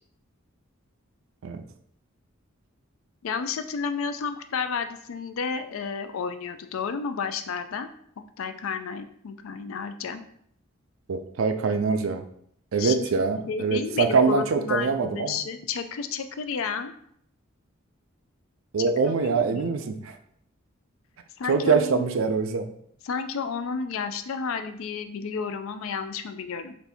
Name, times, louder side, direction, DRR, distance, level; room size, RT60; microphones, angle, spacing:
voice 1, 3.2-7.9 8.4-10.2 12.8-13.1 13.5-16.9 18.8-20.0 21.4-22.1 23.0-26.7, left 5 dB, 75° left, 9 dB, 0.4 m, -32 dB
voice 2, 11.1-12.2 12.7-15.4 18.7-20.2 21.5-22.7, right 5 dB, 70° right, 8 dB, 0.4 m, -24 dB
4.0 x 2.6 x 3.4 m, 0.67 s
head